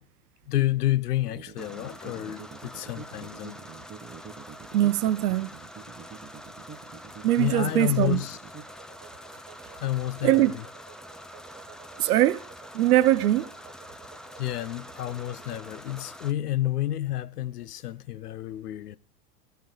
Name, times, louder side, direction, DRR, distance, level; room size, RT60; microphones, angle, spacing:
voice 1, 0.5-3.6 7.4-8.4 9.8-10.7 14.4-19.0, left 14 dB, 85° left, 0.7 m, -30 dB
sound 1, 1.2-16.0, right 6 dB, 25° right, 1.4 m, -47 dB
sound 2, 1.6-16.3, equal, ahead, 0.4 m, -46 dB
voice 2, 4.7-5.5 7.2-8.2 10.2-10.5 12.0-12.4 12.7-13.5, right 14 dB, 75° right, 0.7 m, -21 dB
12.0 x 4.7 x 7.5 m
hypercardioid pair, 90°, 45 cm